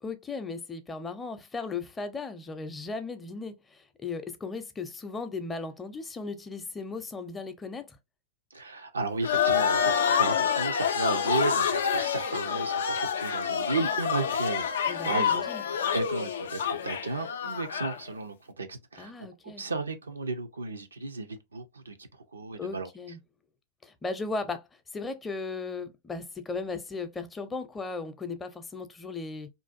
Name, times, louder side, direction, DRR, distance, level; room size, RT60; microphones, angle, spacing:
voice 1, 0.0-8.0 14.9-15.6 19.0-19.6 22.5-23.2 23.8-24.7 24.9-29.5, left 4 dB, 20° left, 0.5 m, -36 dB
voice 2, 8.5-14.8 15.1-15.5 15.9-19.1 19.4-21.9 22.3-22.9, right 3 dB, 90° right, 0.4 m, -34 dB
sound 1, 9.2-18.0, left 7 dB, 75° left, 0.3 m, -27 dB
2.5 x 2.2 x 2.5 m
hypercardioid pair, 95°, 0 cm